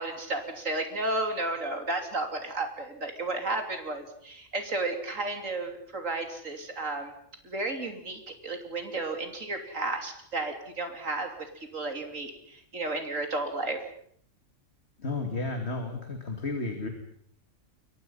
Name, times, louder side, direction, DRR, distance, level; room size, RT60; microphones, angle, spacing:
voice 1, 0.0-7.1 7.4-13.8, right 2 dB, 80° right, 5 dB, 3.5 m, -33 dB
voice 2, 15.0-16.9, left 3 dB, 55° left, 4 dB, 2.8 m, -32 dB
29.0 x 24.0 x 5.7 m, 0.65 s
omnidirectional pair, 1.3 m